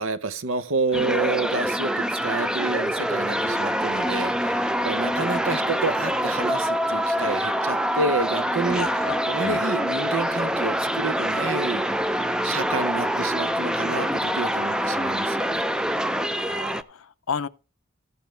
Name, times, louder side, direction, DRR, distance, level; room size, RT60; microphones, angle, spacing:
voice 1, 0.0-8.9 9.3-11.8 12.4-15.7, right 3 dB, 70° right, 0.8 m, -29 dB
sound 1, 0.9-16.8, equal, 5° right, 0.4 m, -25 dB
voice 2, 8.7-9.2 9.4-9.6 16.3-17.5, left 6 dB, 75° left, 0.6 m, -33 dB
13.5 x 8.3 x 3.3 m
head